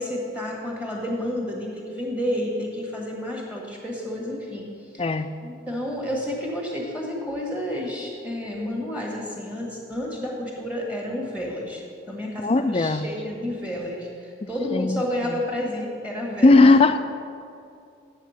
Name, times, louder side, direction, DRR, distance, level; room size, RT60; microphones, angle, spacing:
voice 1, 0.0-4.7 4.9-5.1 5.4-11.8 12.1-16.7, left 1 dB, 5° right, -2 dB, 1.6 m, -30 dB
voice 2, 5.0-5.3 12.4-13.1 14.7-15.4 16.4-17.0, left 3 dB, 30° left, 10 dB, 0.3 m, -18 dB
9.6 x 7.2 x 5.7 m, 2.5 s
head